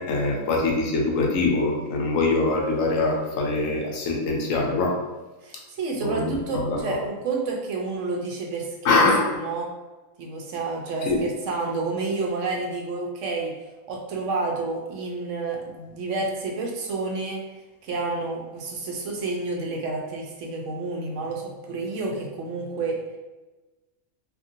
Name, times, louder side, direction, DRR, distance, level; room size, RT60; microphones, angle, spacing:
voice 1, 0.0-5.0 6.0-6.8 8.8-9.3 11.1-11.2, left 3 dB, 80° left, 0 dB, 1.0 m, -23 dB
voice 2, 5.4-9.1 9.3-9.7 10.2-13.5 13.9-17.5 17.8-23.0, right 3 dB, 70° right, 0 dB, 0.9 m, -29 dB
2.8 x 2.6 x 2.6 m, 1.2 s
omnidirectional pair, 1.4 m